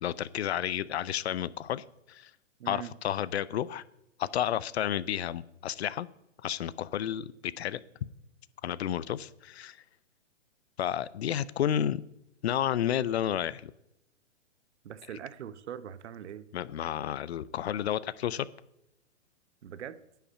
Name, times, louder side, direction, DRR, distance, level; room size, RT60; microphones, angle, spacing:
voice 1, 0.0-2.3 2.7-3.8 4.2-6.1 6.4-7.8 8.6-9.8 10.8-12.0 12.4-13.7 16.5-18.5, left 10 dB, 60° left, 0.6 m, -31 dB
voice 2, 2.6-2.9 14.8-16.5 19.6-20.0, right 9 dB, 65° right, 0.9 m, -42 dB
9.9 x 5.8 x 8.6 m
hypercardioid pair, 145°, 38 cm